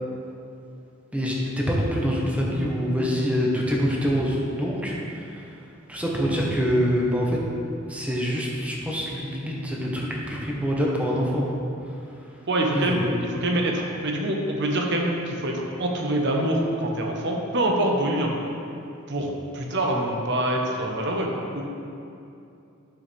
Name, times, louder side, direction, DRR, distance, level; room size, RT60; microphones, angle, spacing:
voice 1, 1.1-5.5 5.9-7.4 7.9-11.6 12.7-13.2, equal, 5° right, -3 dB, 1.1 m, -25 dB
voice 2, 12.5-13.0 13.3-18.3 19.1-21.6, right 1 dB, 55° right, 0 dB, 1.0 m, -25 dB
9.3 x 6.8 x 3.4 m, 2.6 s
head